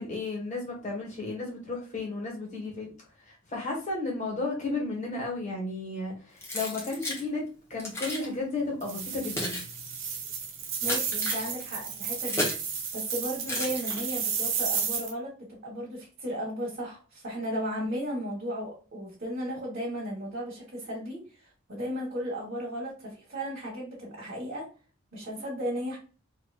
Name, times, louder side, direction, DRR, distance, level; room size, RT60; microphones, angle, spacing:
voice 1, 0.0-2.9 3.2-9.6, left 3 dB, 35° left, 1.6 m, -33 dB
Keys jangling, 6.4-7.2 7.8-8.3 9.0-12.7 13.4-14.4, left 1 dB, 15° left, 1.1 m, -34 dB
sound 1, 8.8-15.1, right 6 dB, 70° right, 0.9 m, -32 dB
voice 2, 10.8-12.5 12.9-24.7 25.1-26.0, equal, 50° right, 1.4 m, -35 dB
4.1 x 2.9 x 2.4 m
head